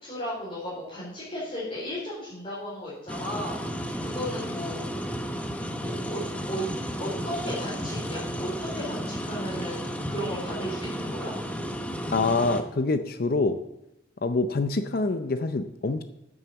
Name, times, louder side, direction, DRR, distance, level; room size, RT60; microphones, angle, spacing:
voice 1, 0.0-4.8 5.7-6.2 6.5-6.7 7.0-11.3, equal, 30° left, -9 dB, 4.3 m, -35 dB
sound 1, 3.1-12.6, equal, 5° left, 1.0 m, -33 dB
voice 2, 12.1-13.6 14.2-16.0, left 3 dB, 50° left, 10 dB, 0.6 m, -25 dB
9.4 x 8.8 x 7.0 m, 0.88 s
head